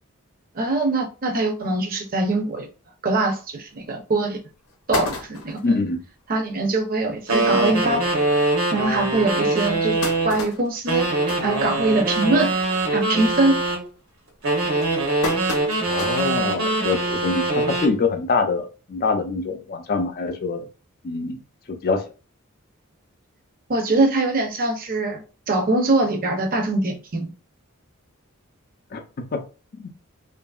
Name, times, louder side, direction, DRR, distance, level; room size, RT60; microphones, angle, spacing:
voice 1, 0.5-2.7 3.0-4.4 4.9-5.7 6.3-8.0 8.7-10.0 10.2-11.1 11.4-12.5 12.9-13.6 23.7-25.2 25.5-27.3, right 2 dB, 40° right, 0.6 m, -22 dB
sound 1, 3.8-3.9 4.4-4.5 4.7-5.8 6.3-6.4 6.7-6.8 7.1-7.3 8.0-8.1 8.6-8.7 9.5-12.3 12.7-13.0 13.3-13.7 14.4-16.4 16.8-16.9 18.1-18.2, left 3 dB, 90° left, 0.7 m, -32 dB
voice 2, 5.6-6.0 15.8-20.7 21.0-21.4 21.8-22.0 28.9-29.0 29.3-29.4 29.8-29.9, left 4 dB, 45° left, 0.4 m, -24 dB
sound 2, 7.3-10.4 10.9-13.8 14.4-18.0, right 2 dB, 75° right, 0.9 m, -23 dB
2.7 x 2.5 x 2.3 m
head